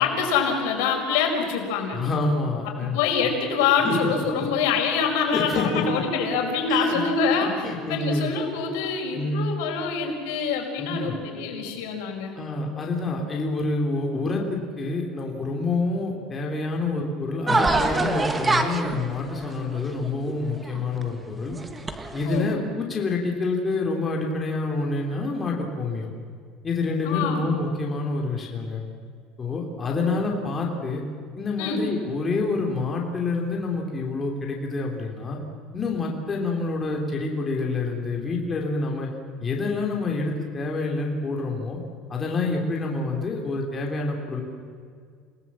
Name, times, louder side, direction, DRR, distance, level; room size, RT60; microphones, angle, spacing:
voice 1, 0.0-2.0 2.9-12.4 22.2-22.5 27.0-27.5 29.8-30.0 31.6-31.8, left 5 dB, 90° left, 2 dB, 5.0 m, -25 dB
voice 2, 1.9-3.0 3.8-3.9 4.4-4.5 5.3-6.0 6.7-7.0 7.4-8.3 9.1-9.5 10.8-11.2 12.3-21.6 22.1-26.1 26.6-28.8 29.4-31.0 31.4-35.4 35.7-39.1 39.4-41.8 42.1-44.4, left 3 dB, 20° left, 0 dB, 3.0 m, -27 dB
sound 1, 17.5-21.0 21.5-22.4, right 3 dB, 15° right, 1.3 m, -25 dB
28.0 x 18.0 x 7.4 m, 2.1 s
cardioid pair, 160°, 0 cm